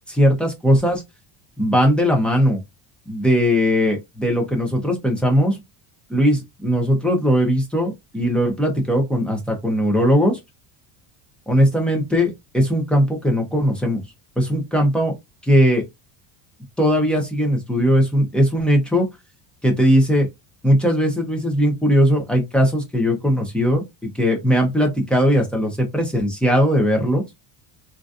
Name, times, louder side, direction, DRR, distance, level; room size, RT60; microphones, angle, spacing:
voice 1, 0.1-1.0 1.6-2.6 3.1-5.6 6.1-10.4 11.5-14.0 14.4-15.1 15.4-15.8 16.8-19.1 19.6-20.3 20.6-23.8 24.1-27.2, equal, ahead, 0.5 m, -19 dB
3.7 x 2.6 x 2.3 m
cardioid pair, 175°, 45 cm